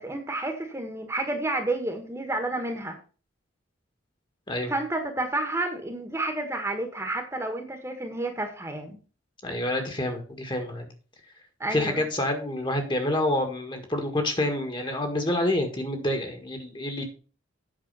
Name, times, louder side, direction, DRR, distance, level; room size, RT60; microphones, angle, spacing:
voice 1, 0.0-3.0 4.7-9.0 11.6-12.0, right 2 dB, 15° right, 5 dB, 1.5 m, -30 dB
voice 2, 9.4-10.9 11.7-17.0, left 1 dB, 25° left, 5 dB, 1.8 m, -28 dB
8.8 x 6.1 x 5.6 m, 0.36 s
head